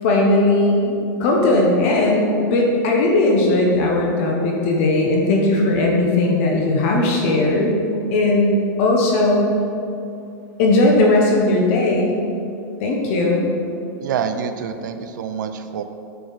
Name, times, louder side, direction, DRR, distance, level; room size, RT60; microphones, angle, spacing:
voice 1, 0.0-9.5 10.6-12.2 12.8-13.5, left 2 dB, 45° left, -1 dB, 1.0 m, -18 dB
voice 2, 14.0-15.8, right 7 dB, 85° right, 8 dB, 0.6 m, -26 dB
9.3 x 4.7 x 4.0 m, 2.6 s
supercardioid pair, 170°, 10 cm